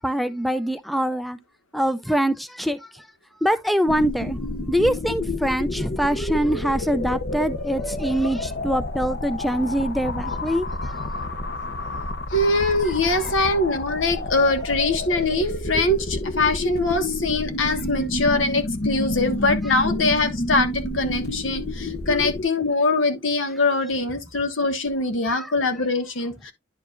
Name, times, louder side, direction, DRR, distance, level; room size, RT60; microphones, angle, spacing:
voice 1, 0.0-1.4 1.7-3.1 3.4-4.4 4.7-10.7 11.0-11.1 13.2-13.3 25.2-25.5, equal, ahead, 0.3 m, -24 dB
sound 1, 3.9-22.4, left 2 dB, 55° left, 0.8 m, -29 dB
voice 2, 12.3-26.5, left 2 dB, 85° left, 1.5 m, -23 dB
10.5 x 4.9 x 2.4 m
head